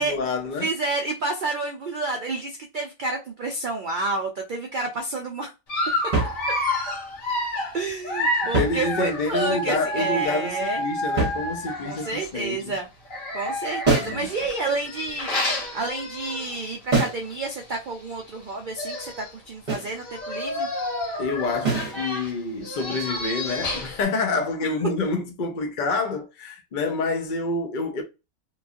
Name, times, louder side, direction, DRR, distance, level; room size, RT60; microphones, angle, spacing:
voice 1, 0.0-0.7 8.5-12.7 14.0-14.3 21.2-28.0, left 3 dB, 55° left, 0.5 m, -27 dB
voice 2, 0.6-5.5 7.7-10.8 11.8-12.9 13.3-15.3 15.7-20.7, right 3 dB, 85° right, 0.4 m, -29 dB
Dog, 5.7-12.3 13.0-16.7 17.1-17.2 17.5-17.6 18.5-18.6 18.8-19.3 19.9-24.0, left 1 dB, 70° left, 1.5 m, -30 dB
sound 1, 6.1-6.9 8.3-9.4 11.2-11.9 13.8-14.3 16.9-17.3 19.7-20.0 21.6-22.0, right 3 dB, 35° right, 0.9 m, -25 dB
3.0 x 2.3 x 2.4 m
omnidirectional pair, 1.5 m